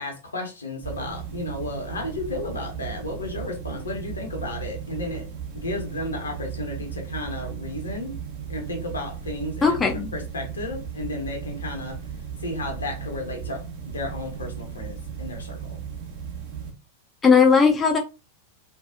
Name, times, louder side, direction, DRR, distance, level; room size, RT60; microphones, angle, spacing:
voice 1, 0.0-5.3 5.5-8.2 8.5-12.0 12.4-15.8, left 2 dB, 75° left, 0.9 m, -33 dB
sound 1, 0.8-16.7, right 7 dB, 45° right, 0.9 m, -36 dB
voice 2, 9.6-10.1 17.2-18.0, left 5 dB, 15° left, 0.5 m, -17 dB
2.7 x 2.3 x 2.4 m
figure-of-eight pair, 90°, 0 cm